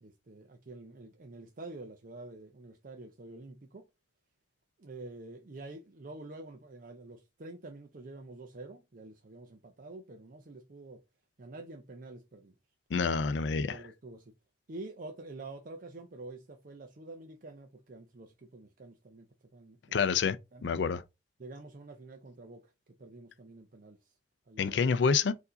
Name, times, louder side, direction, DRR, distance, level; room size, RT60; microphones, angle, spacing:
voice 1, 0.0-3.9 4.8-11.0 11.4-12.5 13.7-14.3 14.7-19.3 19.5-20.2 20.5-20.7 21.4-22.7 23.0-24.2 24.5-24.9, right 2 dB, 50° right, 0.6 m, -47 dB
voice 2, 12.9-13.8 19.9-21.0 24.6-25.3, left 5 dB, 75° left, 0.4 m, -28 dB
4.6 x 2.7 x 3.8 m
head